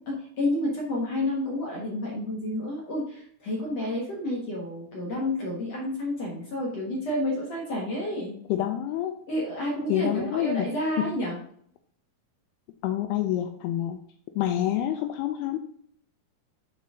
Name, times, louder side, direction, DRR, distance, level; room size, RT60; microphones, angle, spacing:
voice 1, 0.1-8.3 9.3-11.4, left 1 dB, 60° left, -4 dB, 1.7 m, -30 dB
voice 2, 8.5-9.2 9.9-10.7 11.0-11.1 12.8-14.0 14.4-15.6, left 12 dB, 85° left, 6 dB, 2.3 m, -27 dB
7.5 x 4.4 x 3.7 m, 0.65 s
omnidirectional pair, 4.9 m